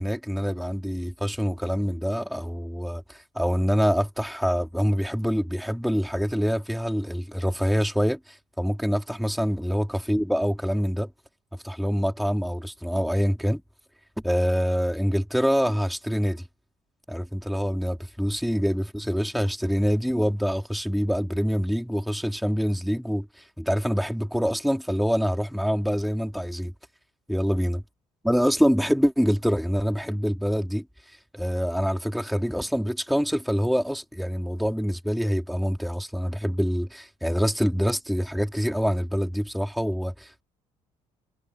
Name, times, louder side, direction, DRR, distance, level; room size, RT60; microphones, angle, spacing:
voice 1, 0.0-11.1 11.6-13.6 14.2-16.4 17.1-26.7 27.3-27.8 28.2-30.8 31.3-40.4, equal, ahead, 2.3 m, -25 dB
cardioid pair, 160°, 12 cm